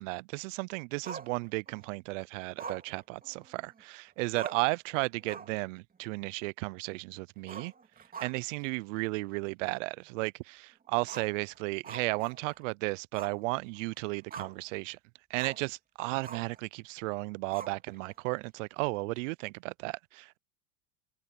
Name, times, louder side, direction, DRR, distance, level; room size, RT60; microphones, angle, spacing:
voice 1, 0.0-7.7 8.2-15.0 15.3-20.4, right 26 dB, 60° right, 0.5 m, -34 dB
Growling, 1.0-1.9 2.6-3.8 4.1-4.2 4.3-4.8 5.2-5.6 6.0-6.1 7.4-8.6 9.0-9.1 9.6-9.7 11.0-12.7 13.1-13.4 13.8-14.7 15.4-15.7 16.2-16.6 17.5-18.1, right 6 dB, 20° right, 2.9 m, -45 dB
hypercardioid pair, 105°, 44 cm